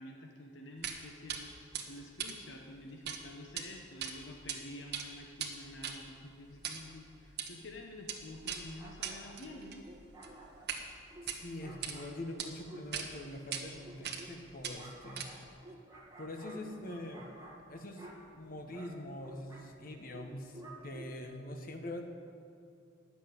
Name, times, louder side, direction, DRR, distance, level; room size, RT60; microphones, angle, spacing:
voice 1, 0.0-9.8, left 1 dB, 70° left, 2 dB, 1.0 m, -49 dB
sound 1, 0.8-1.0 1.3-1.4 1.7-3.2 3.4-3.6 4.0-4.6 4.8-10.8 11.2-11.9 12.4-12.5 12.9-13.1 13.5-13.6 14.0-14.3 14.6-15.5, right 7 dB, 60° right, 1.2 m, -41 dB
sound 2, 8.8-21.4, right 1 dB, 15° right, 1.6 m, -53 dB
voice 2, 11.2-15.3 16.2-17.3 17.7-22.0, left 1 dB, 50° left, 3 dB, 1.3 m, -44 dB
10.0 x 7.3 x 9.0 m, 2.5 s
head